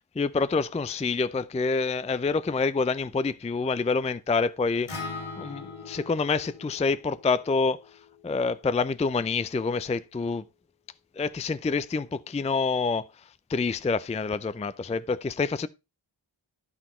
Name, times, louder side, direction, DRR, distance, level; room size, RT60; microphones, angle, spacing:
voice 1, 0.2-4.9 5.4-7.8 8.2-10.4 11.2-13.1 13.5-15.7, left 4 dB, 15° left, 0.4 m, -27 dB
Acoustic guitar, 4.9-9.1, left 3 dB, 80° left, 3.8 m, -42 dB
11.5 x 6.1 x 4.3 m
wide cardioid pair, 105°, 50 cm